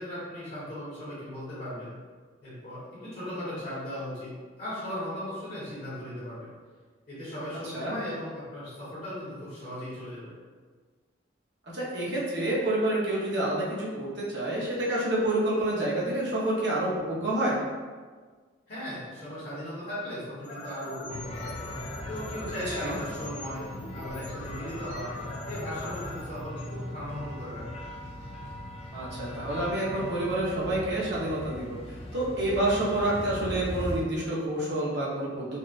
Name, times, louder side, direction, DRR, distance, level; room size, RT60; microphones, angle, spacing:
voice 1, 0.0-2.0 2.4-6.5 7.1-10.3 18.7-21.5 22.1-25.1 25.4-27.8, left 1 dB, 50° left, -11 dB, 1.3 m, -37 dB
voice 2, 11.7-17.6 22.8-22.9 28.9-35.6, right 1 dB, 60° right, -6 dB, 0.9 m, -28 dB
sound 1, 20.4-27.4, left 1 dB, 70° left, 0.7 m, -42 dB
sound 2, 21.1-34.0, left 1 dB, 30° left, 0.3 m, -39 dB
4.1 x 2.4 x 2.5 m, 1.5 s
head